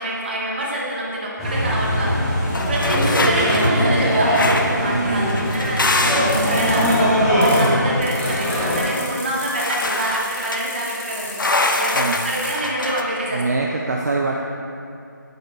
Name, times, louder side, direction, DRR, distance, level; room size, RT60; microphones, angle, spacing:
voice 1, 0.0-2.1 2.7-4.4 4.8-12.0 12.2-13.6, right 1 dB, 30° right, -4 dB, 1.1 m, -26 dB
sound 1, 1.4-8.8, equal, ahead, 0.7 m, -20 dB
sound 2, 2.5-3.7 4.3-4.8 5.3-6.5 9.6-10.6 11.4-13.0, left 2 dB, 80° left, 0.7 m, -23 dB
voice 2, 4.8-5.6 7.6-7.8 11.9-12.2 13.3-14.3, right 3 dB, 55° right, 0 dB, 0.5 m, -24 dB
sound 3, 6.3-7.7 8.0-12.6, left 2 dB, 35° left, 1.0 m, -35 dB
8.2 x 7.9 x 2.4 m, 2.5 s
figure-of-eight pair, 170°, 11 cm